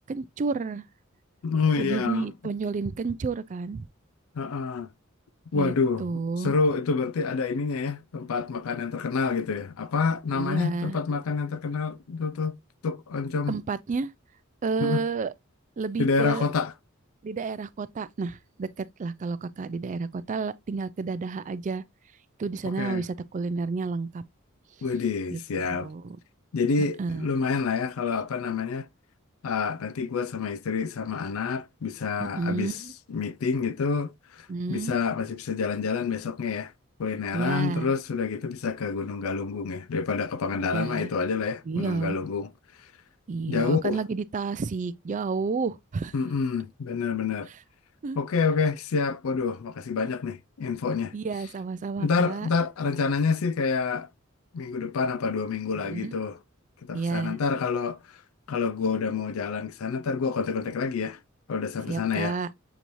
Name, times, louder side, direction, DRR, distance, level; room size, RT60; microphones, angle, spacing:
voice 1, 0.1-0.8 1.8-3.9 5.5-5.7 6.0-6.5 10.3-11.0 13.5-14.1 14.6-15.3 15.8-16.5 17.2-21.8 22.4-24.2 25.3-26.2 27.0-27.3 32.2-32.9 34.5-35.0 37.3-37.9 40.7-41.1 41.7-42.2 43.3-46.1 48.0-48.2 51.1-52.5 55.8-56.2 56.9-57.4 61.9-62.5, right 4 dB, 35° right, 0.3 m, -30 dB
voice 2, 1.4-2.3 4.3-4.9 5.5-13.6 14.8-15.0 16.0-16.7 22.6-23.0 24.8-25.9 26.5-28.9 29.4-32.8 33.1-34.1 34.7-36.7 37.0-42.5 43.5-44.0 46.1-47.5 48.1-51.1 52.0-54.1 54.5-56.4 56.8-58.0 58.5-61.2 61.5-62.4, left 5 dB, 75° left, 0.4 m, -28 dB
6.9 x 3.0 x 2.5 m
head